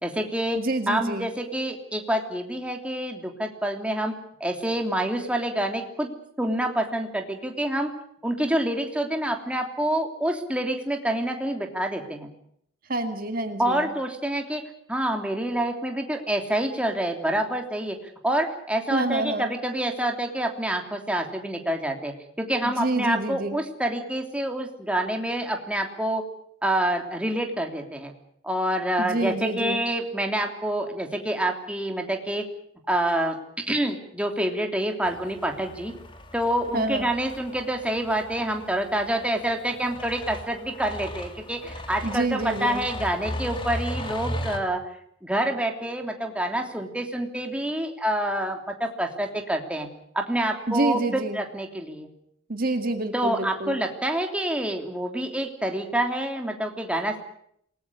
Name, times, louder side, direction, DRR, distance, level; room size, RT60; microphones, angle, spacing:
voice 1, 0.0-4.1 4.4-6.1 6.4-7.9 8.2-12.3 13.6-14.6 14.9-18.0 18.2-26.2 26.6-28.1 28.4-32.5 32.9-35.9 36.3-44.8 45.2-49.9 50.1-52.1 53.1-57.2, right 1 dB, 5° right, 3 dB, 3.1 m, -27 dB
voice 2, 0.6-1.3 12.9-13.9 18.9-19.5 22.6-23.6 29.0-29.8 36.7-37.1 42.0-42.8 50.7-51.4 52.5-53.8, right 2 dB, 50° right, 7 dB, 2.0 m, -27 dB
sound 1, 35.0-44.6, left 1 dB, 25° left, 3.0 m, -37 dB
27.5 x 20.0 x 6.8 m, 0.68 s
head